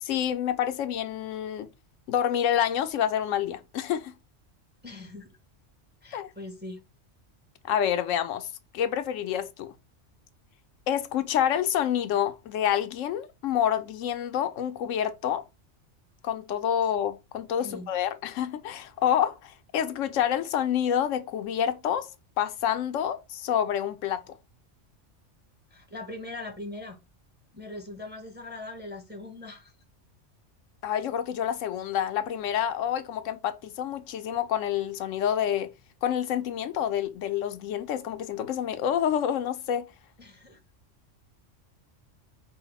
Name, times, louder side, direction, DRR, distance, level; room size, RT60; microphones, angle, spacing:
voice 1, 0.0-1.7 2.1-4.1 6.1-6.3 7.6-9.7 10.9-15.4 16.2-22.1 22.4-24.4 30.8-35.7 36.0-39.9, left 9 dB, 85° left, 0.9 m, -28 dB
voice 2, 4.8-5.3 6.0-6.8 17.6-17.9 25.7-27.0 27.5-29.7 40.2-40.6, left 2 dB, 10° right, 0.7 m, -41 dB
4.8 x 2.1 x 3.9 m
omnidirectional pair, 1.3 m